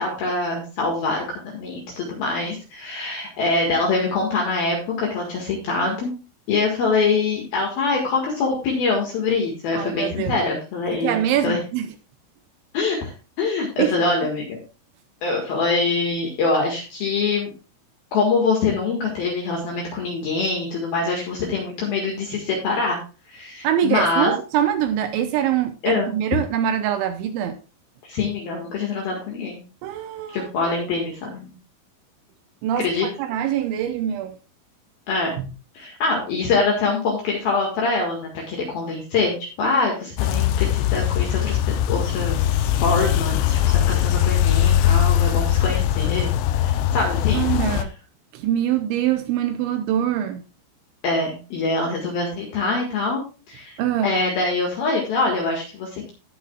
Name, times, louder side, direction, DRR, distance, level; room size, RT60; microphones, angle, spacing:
voice 1, 0.0-6.1 6.5-11.6 12.7-13.1 13.4-14.6 15.2-17.5 18.1-23.0 23.3-24.3 25.8-26.1 28.1-29.6 30.3-31.5 32.8-33.1 35.1-35.3 35.7-41.6 41.9-42.4 42.8-46.3 46.6-47.4 51.0-53.2 53.5-56.1, left 3 dB, 60° left, -1 dB, 3.0 m, -24 dB
voice 2, 9.8-10.4 10.9-11.9 13.8-13.9 23.6-27.6 29.8-31.0 32.6-34.4 35.4-35.5 47.3-47.9 48.3-50.4 53.8-54.1, right 10 dB, 80° right, 8 dB, 2.8 m, -24 dB
sound 1, 40.2-47.8, left 11 dB, 80° left, 2.7 m, -20 dB
18.5 x 6.3 x 2.3 m, 0.34 s
omnidirectional pair, 5.8 m